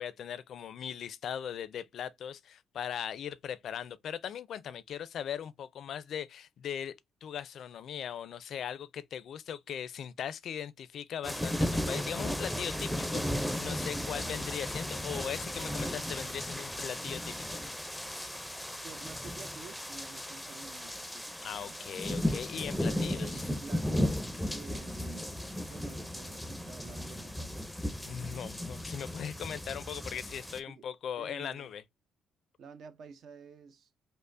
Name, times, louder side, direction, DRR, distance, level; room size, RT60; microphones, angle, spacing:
voice 1, 0.0-17.6 21.4-23.5 28.1-31.8, left 9 dB, 65° left, 0.4 m, -39 dB
sound 1, 11.2-30.6, left 1 dB, 5° left, 0.5 m, -35 dB
voice 2, 18.8-21.8 22.9-24.2 24.5-25.3 25.7-27.7 29.5-29.6 30.7-30.9 31.2-31.7 32.6-33.9, right 6 dB, 65° right, 0.6 m, -50 dB
5.4 x 2.0 x 2.5 m
cardioid pair, 90°, 0 cm